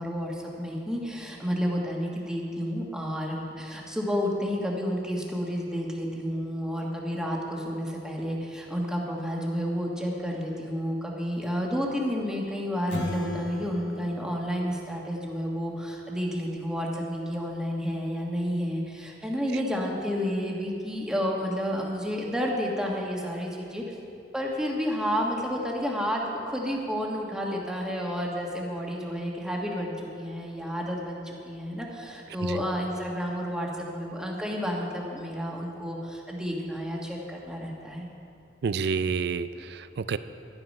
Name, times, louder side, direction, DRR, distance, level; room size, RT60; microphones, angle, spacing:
voice 1, 0.0-23.8 24.3-38.1, equal, 5° right, -2 dB, 1.5 m, -30 dB
sound 1, 12.9-15.6, left 2 dB, 80° left, 0.8 m, -37 dB
voice 2, 38.6-40.2, right 5 dB, 65° right, 14 dB, 0.4 m, -29 dB
11.5 x 10.5 x 5.4 m, 2.6 s
head